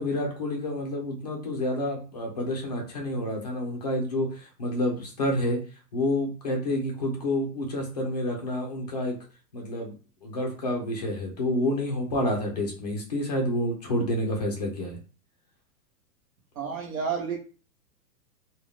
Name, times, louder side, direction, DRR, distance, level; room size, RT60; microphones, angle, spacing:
voice 1, 0.0-5.6 5.9-9.2 9.5-9.9 10.2-15.0, left 1 dB, 25° left, 0 dB, 0.5 m, -29 dB
voice 2, 16.6-17.4, right 6 dB, 55° right, 0 dB, 1.1 m, -30 dB
2.5 x 2.4 x 3.2 m, 0.36 s
hypercardioid pair, 170°, 50 cm